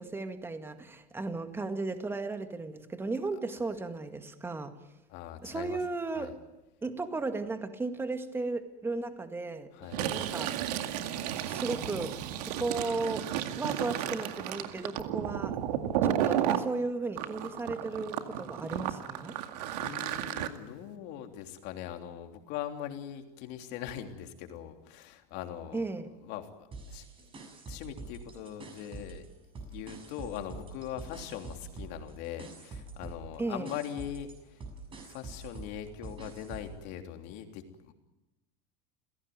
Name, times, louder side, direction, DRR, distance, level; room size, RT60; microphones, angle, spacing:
voice 1, 0.0-4.7 5.4-6.3 6.8-9.7 10.1-10.6 11.3-13.3 13.6-15.6 16.0-19.4 25.7-26.1 33.4-33.7, right 3 dB, 10° right, 8 dB, 1.9 m, -35 dB
voice 2, 5.1-5.8 6.1-6.3 9.7-10.0 19.7-25.8 26.2-27.0 27.7-29.3 29.7-34.6 35.0-37.9, left 10 dB, 60° left, 5 dB, 3.3 m, -41 dB
Fill (with liquid), 9.8-16.6 17.2-20.5, right 10 dB, 85° right, 2.2 m, -33 dB
sound 1, 26.7-29.3 29.5-36.8, right 3 dB, 25° right, 7.0 m, -45 dB
29.0 x 17.0 x 9.5 m, 1.0 s
supercardioid pair, 140°, 20 cm